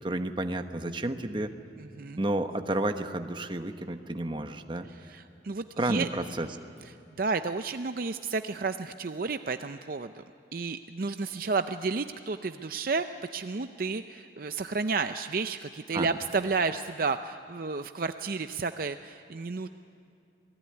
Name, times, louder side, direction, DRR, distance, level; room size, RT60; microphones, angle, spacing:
voice 1, 0.0-1.5 2.2-4.9 5.8-6.5 15.9-16.1, right 1 dB, 25° right, 7 dB, 1.1 m, -31 dB
voice 2, 1.8-2.2 5.1-6.1 7.2-10.2 10.5-13.1 13.3-19.7, right 4 dB, 50° right, 9 dB, 0.5 m, -31 dB
27.5 x 19.5 x 9.7 m, 2.6 s
head